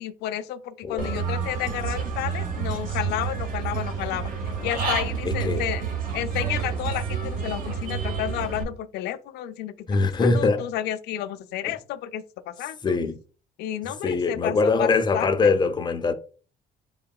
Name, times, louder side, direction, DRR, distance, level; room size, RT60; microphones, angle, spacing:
voice 1, 0.0-5.8 6.1-9.9 10.2-13.0 13.6-15.5, left 12 dB, 75° left, 0.4 m, -31 dB
voice 2, 0.8-1.1 5.3-5.6 9.9-10.7 12.8-13.2 14.0-16.1, left 4 dB, 25° left, 0.5 m, -22 dB
Human voice / Bird, 1.0-8.6, right 6 dB, 55° right, 1.0 m, -29 dB
3.9 x 3.7 x 2.3 m
cardioid pair, 110°, 17 cm